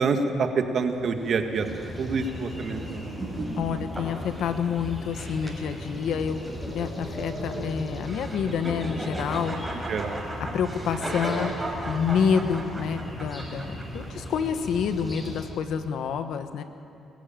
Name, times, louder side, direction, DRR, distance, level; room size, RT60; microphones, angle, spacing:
voice 1, 0.0-1.7 2.0-3.1 9.9-10.2, right 4 dB, 55° right, 5 dB, 1.9 m, -26 dB
sound 1, 0.9-14.5, right 1 dB, 15° right, 5.4 m, -37 dB
sound 2, 1.5-15.5, equal, 5° left, 7.0 m, -38 dB
voice 2, 3.6-6.4 6.7-10.0 10.4-16.6, left 7 dB, 75° left, 9 dB, 1.3 m, -28 dB
22.0 x 15.0 x 9.1 m, 2.6 s
cardioid pair, 90°, 0 cm